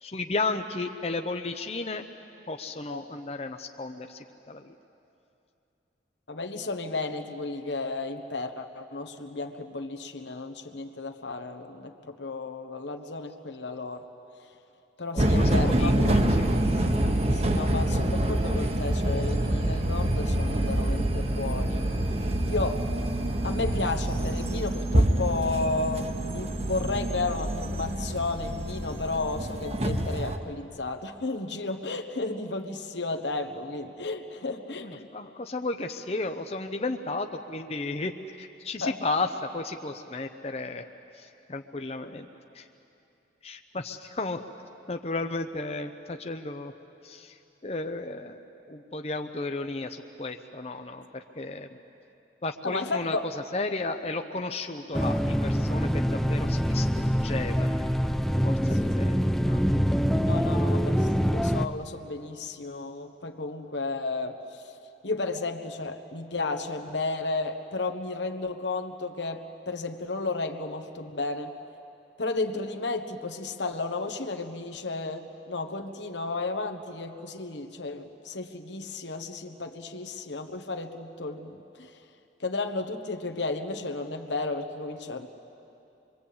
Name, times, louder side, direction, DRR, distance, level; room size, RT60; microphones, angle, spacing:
voice 1, 0.0-2.0 2.5-4.7 15.1-16.2 34.8-40.9 41.1-42.3 42.5-42.7 43.4-44.4 44.9-46.7 47.0-47.4 47.6-48.4 48.7-51.7 52.4-53.2 53.5-57.8 58.4-59.2 59.4-59.6, left 3 dB, 35° left, 6 dB, 0.7 m, -33 dB
voice 2, 6.3-14.0 15.0-16.2 17.2-22.0 22.5-22.9 23.4-35.1 38.8-39.0 52.6-53.3 58.7-58.9 60.3-64.6 65.0-71.5 72.2-81.9 82.4-85.3, left 3 dB, 85° left, 5 dB, 1.4 m, -33 dB
sound 1, 15.2-30.4, right 1 dB, 35° right, 1.1 m, -26 dB
sound 2, 54.9-61.7, equal, ahead, 0.5 m, -25 dB
25.5 x 22.5 x 8.7 m, 2.8 s
head